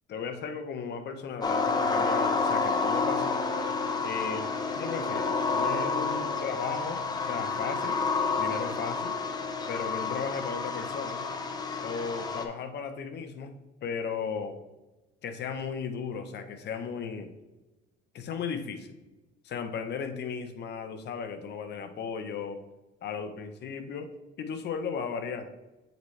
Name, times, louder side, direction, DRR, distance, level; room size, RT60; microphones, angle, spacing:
voice 1, 0.1-3.4 4.0-8.0 8.4-9.2 9.7-11.2 11.8-13.5 13.8-14.6 15.2-17.3 18.1-18.9 19.4-22.6 23.0-24.1 24.4-25.5, left 6 dB, 55° left, 7 dB, 0.8 m, -35 dB
sound 1, 1.4-12.4, left 4 dB, 20° left, 0.7 m, -29 dB
8.0 x 4.0 x 3.2 m, 1.1 s
cardioid pair, 115°, 21 cm